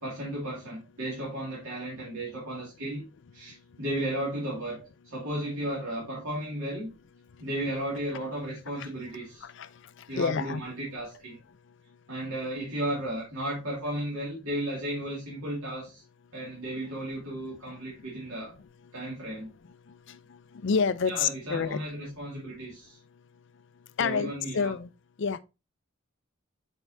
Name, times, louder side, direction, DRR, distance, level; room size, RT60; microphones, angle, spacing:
voice 1, 0.0-3.1 3.3-4.8 5.0-6.9 7.4-9.4 10.1-11.4 12.1-16.0 16.3-18.5 18.9-19.5 21.1-23.0 24.0-24.7, right 1 dB, 75° right, 2.4 m, -34 dB
voice 2, 10.2-10.6 20.5-21.8 24.0-24.9 25.2-25.4, left 5 dB, 55° left, 0.4 m, -28 dB
8.1 x 4.5 x 2.6 m
head